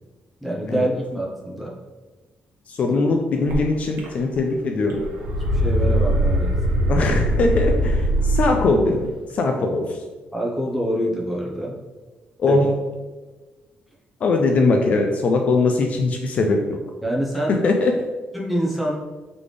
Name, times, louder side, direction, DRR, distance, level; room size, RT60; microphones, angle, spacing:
voice 1, 0.4-1.7 2.9-3.2 5.6-6.5 10.3-11.8 12.5-12.6 17.0-17.6 18.3-18.9, right 1 dB, ahead, -4 dB, 0.8 m, -25 dB
voice 2, 2.7-5.0 6.9-10.0 12.4-12.7 14.2-16.6 17.5-17.9, left 3 dB, 45° left, 3 dB, 0.4 m, -21 dB
sound 1, 3.5-3.6 4.0-4.5 4.8-8.8, right 1 dB, 75° right, 0.9 m, -21 dB
4.0 x 3.3 x 3.3 m, 1.2 s
cardioid pair, 155°, 3 cm